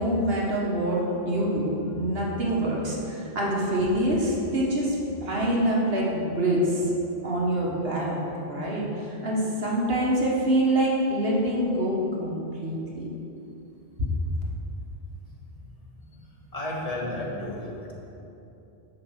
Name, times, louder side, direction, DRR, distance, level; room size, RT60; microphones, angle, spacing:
voice 1, 0.0-6.9 7.2-8.2 8.5-13.1, right 1 dB, 70° right, -4 dB, 1.7 m, -25 dB
voice 2, 15.3-15.6 16.1-17.9, left 1 dB, 35° left, -4 dB, 1.6 m, -34 dB
7.6 x 5.5 x 7.3 m, 2.9 s
omnidirectional pair, 1.1 m